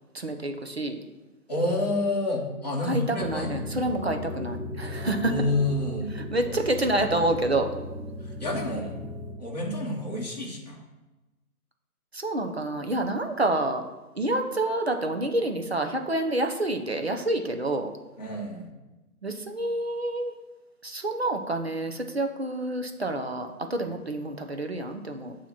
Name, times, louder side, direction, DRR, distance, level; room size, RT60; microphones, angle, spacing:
voice 1, 0.1-1.0 2.9-5.3 6.2-7.7 12.1-13.8 14.2-17.9 19.2-20.3 20.8-25.3, right 1 dB, 45° right, 5 dB, 0.5 m, -28 dB
voice 2, 1.5-3.9 5.2-6.1 8.2-8.9 9.4-10.8 18.2-18.7 23.8-23.9, left 1 dB, 25° left, -3 dB, 0.9 m, -29 dB
sound 1, 3.2-9.3, left 1 dB, 15° right, 1.9 m, -36 dB
7.1 x 2.9 x 5.8 m, 1.1 s
figure-of-eight pair, 165°, 45 cm